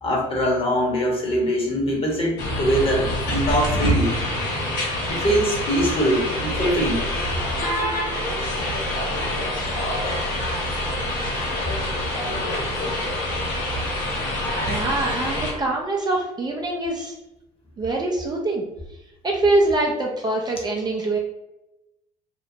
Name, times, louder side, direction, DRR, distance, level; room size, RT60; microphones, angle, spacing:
voice 1, 0.0-4.3 5.1-7.1 11.6-11.7, equal, 35° left, -1 dB, 1.0 m, -23 dB
sound 1, 2.4-15.5, left 1 dB, 65° left, 1.0 m, -26 dB
voice 2, 14.7-17.1 17.8-18.6 19.2-21.2, right 2 dB, 25° right, 0 dB, 0.5 m, -24 dB
2.8 x 2.0 x 2.6 m, 0.93 s
hypercardioid pair, 65°, 16 cm